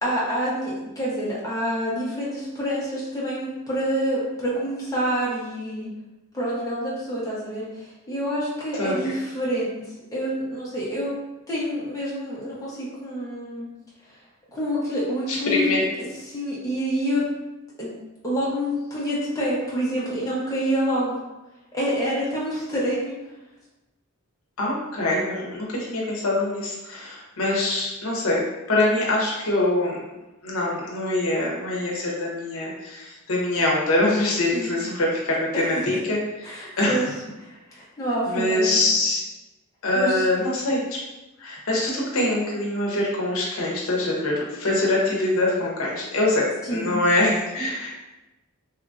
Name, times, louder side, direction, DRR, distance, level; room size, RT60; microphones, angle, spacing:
voice 1, 0.0-5.9 6.3-9.8 10.1-11.2 11.5-13.7 14.5-15.9 16.3-17.3 17.8-17.9 18.2-21.2 21.7-23.1 34.5-34.8 35.5-36.0 36.4-37.1 37.4-38.8 39.9-40.2 46.6-46.9, equal, 15° left, -8 dB, 0.7 m, -27 dB
voice 2, 8.8-9.1 15.3-15.8 24.6-28.4 28.7-30.0 30.4-36.2 36.4-37.0 38.3-39.2 39.8-40.8 41.4-46.4 46.7-47.9, left 2 dB, 70° left, -4 dB, 0.7 m, -24 dB
2.9 x 2.4 x 2.4 m, 1.0 s
head